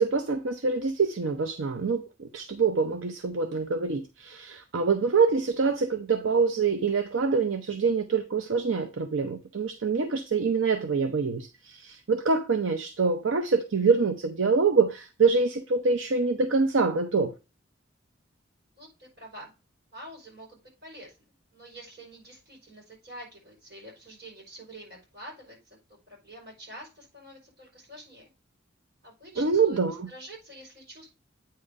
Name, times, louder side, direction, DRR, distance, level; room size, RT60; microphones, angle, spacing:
voice 1, 0.0-17.3 29.4-30.1, right 4 dB, 80° right, 0.6 m, -25 dB
voice 2, 18.8-19.5 19.9-21.2 21.5-28.3 29.0-31.1, right 1 dB, 55° right, 5.1 m, -47 dB
8.8 x 3.7 x 5.2 m
head